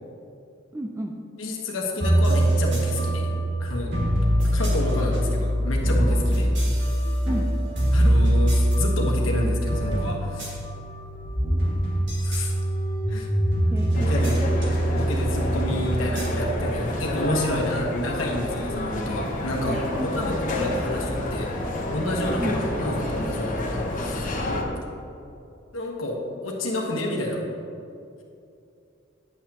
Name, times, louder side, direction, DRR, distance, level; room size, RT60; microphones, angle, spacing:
voice 1, 0.7-1.1 7.3-7.5 13.7-14.5 20.0-20.5 22.4-22.6, right 1 dB, 15° right, 2 dB, 0.4 m, -32 dB
voice 2, 1.4-3.3 3.6-4.1 4.4-6.5 7.9-10.6 12.2-12.5 13.1-13.3 13.9-14.4 14.9-21.5 21.9-24.6 25.7-27.4, left 1 dB, 85° left, -1 dB, 1.3 m, -29 dB
sound 1, 2.0-17.3, right 1 dB, 65° right, 1.9 m, -23 dB
sound 2, 13.9-24.6, left 1 dB, 45° left, 1.0 m, -29 dB
10.0 x 8.2 x 2.9 m, 2.6 s
head